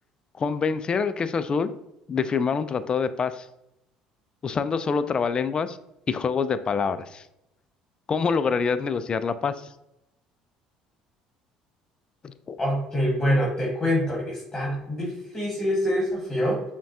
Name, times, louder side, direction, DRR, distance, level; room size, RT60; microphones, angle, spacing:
voice 1, 0.4-1.7 2.1-3.5 4.4-5.8 6.1-7.2 8.1-9.7 12.2-12.6, left 5 dB, 35° left, 12 dB, 0.3 m, -26 dB
voice 2, 12.6-16.6, equal, 15° left, -3 dB, 1.4 m, -25 dB
5.7 x 2.2 x 2.6 m, 0.85 s
hypercardioid pair, 70°, 3 cm